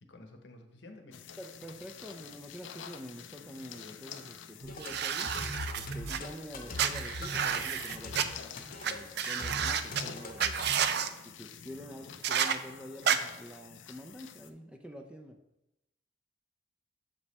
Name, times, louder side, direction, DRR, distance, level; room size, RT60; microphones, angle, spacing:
voice 1, 0.0-1.3, left 2 dB, 70° left, 5 dB, 0.9 m, -52 dB
sound 1, 1.1-14.5, left 8 dB, 85° left, 0.5 m, -48 dB
voice 2, 1.4-5.3 5.8-8.4 8.8-10.7 11.2-15.4, equal, 5° right, 3 dB, 0.5 m, -47 dB
sound 2, 4.6-10.8, left 1 dB, 50° left, 0.9 m, -41 dB
sound 3, 4.8-6.2 6.8-8.2 8.8-8.9 9.2-10.0 10.4-11.1 12.2-12.6 13.1-13.2, right 8 dB, 60° right, 0.4 m, -30 dB
7.1 x 5.2 x 4.2 m, 0.90 s
head